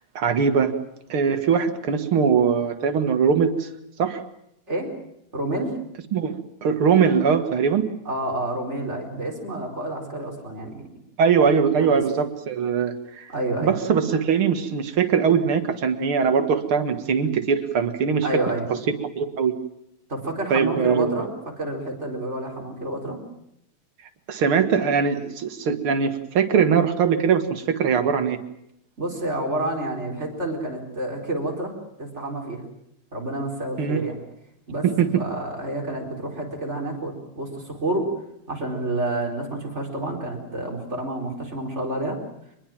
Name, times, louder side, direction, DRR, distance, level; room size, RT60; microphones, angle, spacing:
voice 1, 0.2-0.7 1.1-3.7 4.0-4.2 6.1-7.9 11.2-13.3 13.6-18.3 18.7-19.5 20.5-21.3 24.3-28.4 33.8-34.0 34.8-35.1, right 6 dB, 80° right, 8 dB, 2.5 m, -21 dB
voice 2, 5.3-5.7 8.0-10.9 11.8-12.0 13.3-13.7 18.2-18.7 20.1-21.3 21.6-23.2 29.0-31.7 32.0-32.6 33.1-34.2 34.7-38.1 38.5-42.2, right 1 dB, 30° right, 0 dB, 4.8 m, -29 dB
24.5 x 21.0 x 7.4 m, 0.77 s
omnidirectional pair, 2.3 m